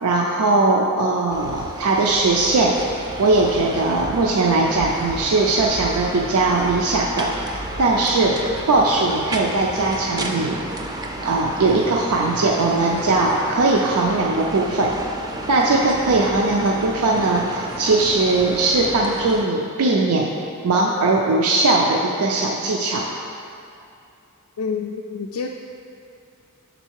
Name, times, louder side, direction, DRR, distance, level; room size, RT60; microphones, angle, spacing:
voice 1, 0.0-2.8 3.2-8.4 8.7-10.6 11.2-14.9 15.5-20.3 20.6-23.0, right 2 dB, 85° right, -1 dB, 0.5 m, -19 dB
sound 1, 1.3-19.5, right 1 dB, 20° right, 0.3 m, -32 dB
voice 2, 24.6-25.5, left 5 dB, 70° left, 0 dB, 0.3 m, -27 dB
6.3 x 4.0 x 4.5 m, 2.7 s
head